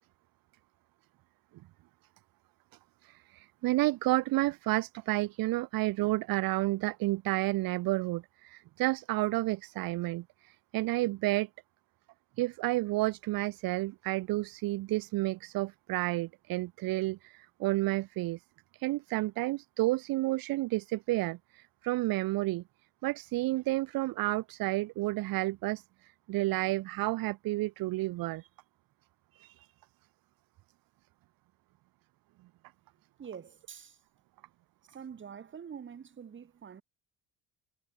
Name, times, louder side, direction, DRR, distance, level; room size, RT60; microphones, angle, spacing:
voice 1, 3.0-11.5 12.4-18.4 18.7-22.6 23.0-28.5 29.3-29.7, right 18 dB, 50° right, 0.9 m, -31 dB
voice 2, 33.2-34.0 34.9-36.8, right 7 dB, 25° right, 4.4 m, -46 dB
cardioid pair, 165°, 44 cm